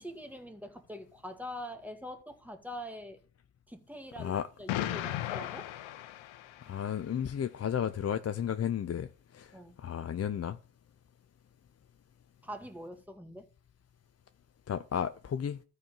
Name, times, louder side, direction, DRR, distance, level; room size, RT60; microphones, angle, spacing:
voice 1, 0.0-3.2 3.7-5.7 9.5-9.8 12.4-13.5, equal, 5° right, 2.2 m, -44 dB
Explosion, 4.7-6.9, left 13 dB, 75° left, 1.1 m, -36 dB
voice 2, 6.6-9.1 9.3-10.6 14.7-15.6, left 8 dB, 30° left, 0.7 m, -33 dB
13.0 x 4.9 x 7.1 m
supercardioid pair, 75°, 47 cm